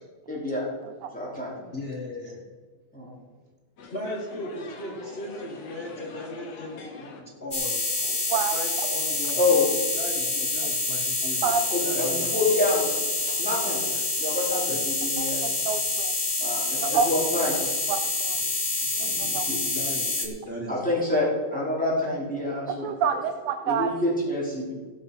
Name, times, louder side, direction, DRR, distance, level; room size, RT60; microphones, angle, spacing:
voice 1, 0.3-0.6 1.1-1.7 2.9-3.2 9.3-9.7 11.7-13.0 13.4-13.8 14.2-15.6 16.4-17.6 19.0-19.6 20.7-22.9 23.6-24.7, left 2 dB, 5° left, -6 dB, 3.6 m, -27 dB
voice 2, 1.7-2.4 3.9-8.2 8.5-9.4 9.9-12.4 14.7-14.9 18.3-18.9 19.2-20.7, left 1 dB, 80° left, -1 dB, 0.5 m, -38 dB
sound 1, 3.8-7.2, left 3 dB, 60° left, 2.4 m, -42 dB
sound 2, 7.5-20.3, left 2 dB, 35° left, 0.8 m, -27 dB
voice 3, 15.2-16.1 16.8-17.1 17.9-18.0 18.3-18.4 19.0-19.5 22.6-23.9, right 7 dB, 75° right, 7 dB, 1.6 m, -27 dB
17.0 x 6.6 x 5.6 m, 1.5 s
omnidirectional pair, 3.4 m